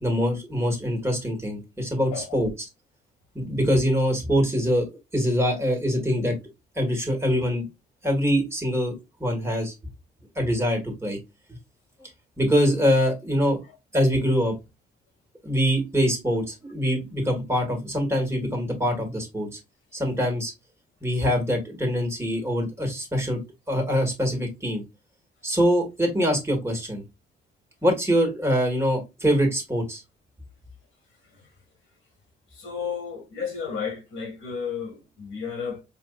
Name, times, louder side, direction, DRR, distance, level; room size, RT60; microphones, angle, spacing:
voice 1, 0.0-2.5 3.3-6.3 6.7-7.7 8.0-8.9 9.2-9.7 10.3-11.2 12.0-12.1 12.4-13.6 13.9-14.5 15.4-19.6 19.9-20.5 21.0-23.4 23.7-24.8 25.4-27.0 27.8-30.0, equal, 15° right, 1.7 m, -24 dB
voice 2, 2.1-2.4 32.5-35.8, left 6 dB, 85° left, 1.9 m, -33 dB
4.5 x 2.6 x 2.4 m
cardioid pair, 90°, 20 cm